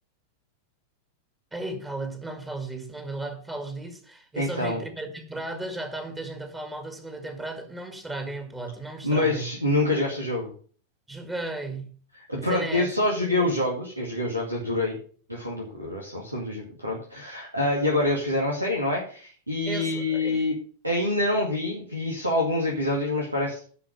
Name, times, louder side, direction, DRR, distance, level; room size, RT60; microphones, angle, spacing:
voice 1, 1.5-9.5 11.1-12.0 12.4-12.9 13.3-13.5 19.7-20.5, right 2 dB, 10° right, 1.7 m, -35 dB
voice 2, 4.4-4.8 9.0-10.5 12.3-15.0 15.3-20.6 20.8-23.6, left 2 dB, 85° right, 2.1 m, -26 dB
11.0 x 5.0 x 6.6 m
figure-of-eight pair, 90°, 0 cm